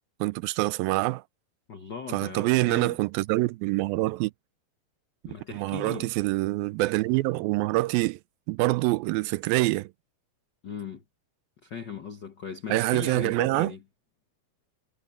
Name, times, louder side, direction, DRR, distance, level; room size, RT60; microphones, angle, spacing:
voice 1, 0.2-1.2 2.1-4.3 5.2-8.2 8.5-9.9 12.7-13.7, right 20 dB, 85° right, 2.4 m, -25 dB
voice 2, 1.7-3.0 5.2-6.1 10.6-11.0 11.6-13.8, left 6 dB, 75° left, 1.0 m, -38 dB
omnidirectional pair, 4.2 m